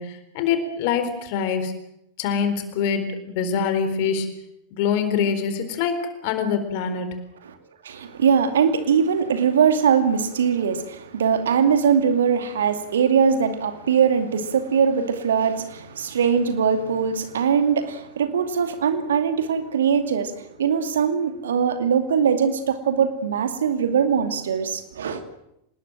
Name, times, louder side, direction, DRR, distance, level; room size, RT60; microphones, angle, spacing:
voice 1, 0.0-1.7 2.2-4.3 4.7-7.1, left 6 dB, 45° left, 4.1 m, -24 dB
voice 2, 7.8-25.2, right 7 dB, 65° right, 2.5 m, -21 dB
26.5 x 20.0 x 7.6 m
figure-of-eight pair, 90°, 0 cm